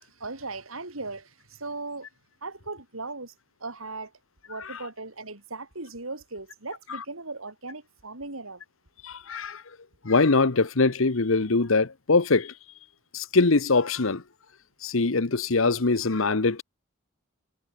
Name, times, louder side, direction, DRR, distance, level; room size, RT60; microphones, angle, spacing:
voice 1, 0.0-2.1 2.4-3.3 3.6-4.1 4.5-8.6, right 3 dB, 85° right, 4.9 m, -38 dB
voice 2, 9.0-9.6 10.0-12.5 13.1-14.2 14.8-16.6, left 3 dB, 70° left, 1.1 m, -23 dB
head